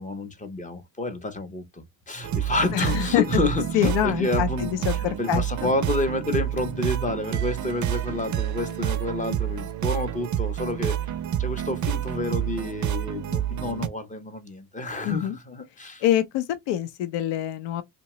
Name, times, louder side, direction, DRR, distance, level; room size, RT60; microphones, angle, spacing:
voice 1, 0.0-16.0, left 2 dB, 20° left, 0.6 m, -29 dB
sound 1, 2.2-13.9, right 10 dB, 45° right, 0.5 m, -28 dB
voice 2, 2.7-3.2 3.7-5.7 15.0-15.4 16.0-17.8, left 11 dB, 75° left, 0.6 m, -25 dB
2.8 x 2.2 x 2.9 m
cardioid pair, 95°, 44 cm